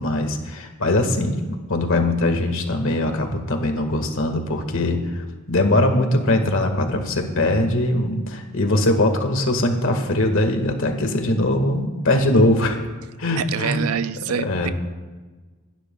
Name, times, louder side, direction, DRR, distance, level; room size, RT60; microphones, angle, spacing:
voice 1, 0.0-1.4 1.7-5.0 5.5-12.8 13.2-13.8 14.4-14.7, left 1 dB, 65° left, 5 dB, 1.7 m, -21 dB
voice 2, 13.3-14.7, right 7 dB, 85° right, 13 dB, 0.5 m, -26 dB
27.0 x 11.5 x 2.3 m, 1.3 s
head